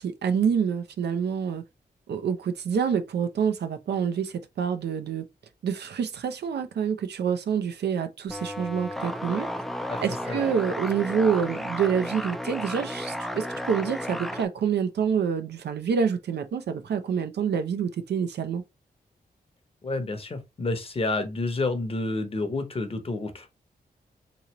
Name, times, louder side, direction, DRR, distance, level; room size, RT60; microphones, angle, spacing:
voice 1, 0.0-1.6 2.1-5.2 5.6-9.5 10.0-18.6, right 7 dB, 85° right, 0.6 m, -27 dB
sound 1, 8.3-14.4, equal, ahead, 0.3 m, -33 dB
voice 2, 19.8-23.5, left 2 dB, 35° left, 0.8 m, -29 dB
3.8 x 3.0 x 2.9 m
wide cardioid pair, 125°, 17 cm